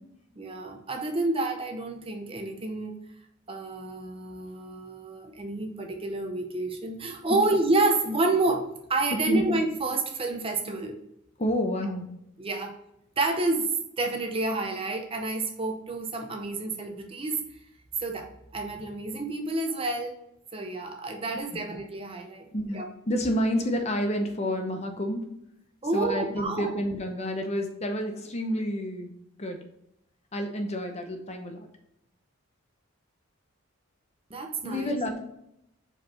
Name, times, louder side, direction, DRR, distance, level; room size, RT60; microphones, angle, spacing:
voice 1, 0.4-3.0 3.5-11.0 12.4-12.7 13.2-13.7 14.0-17.6 18.0-20.1 20.5-22.5 22.7-22.9 25.8-26.7 34.3-34.9, right 2 dB, 25° right, 3 dB, 0.6 m, -29 dB
voice 2, 11.4-12.1 21.5-21.6 22.5-25.3 25.9-29.1 29.4-29.6 30.3-31.7 34.6-35.2, equal, 30° left, 5 dB, 0.7 m, -29 dB
5.0 x 4.5 x 4.2 m, 0.80 s
head